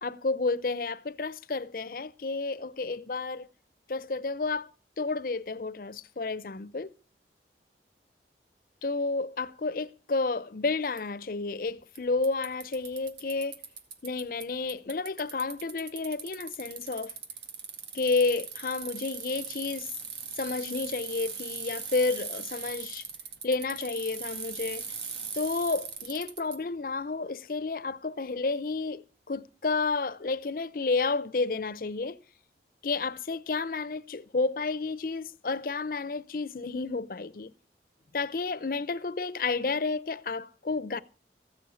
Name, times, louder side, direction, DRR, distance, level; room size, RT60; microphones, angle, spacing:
voice 1, 0.0-3.5 3.9-4.7 5.0-6.9 8.8-13.6 14.0-17.1 17.9-19.9 20.4-23.1 23.4-24.9 25.3-29.0 29.3-32.2 32.8-37.5 38.1-41.0, left 3 dB, 50° left, 0.6 m, -31 dB
Bicycle, 11.0-11.1 12.0-12.1 12.2-14.4 14.7-26.6, right 6 dB, 75° right, 2.0 m, -39 dB
15.0 x 6.3 x 9.2 m
head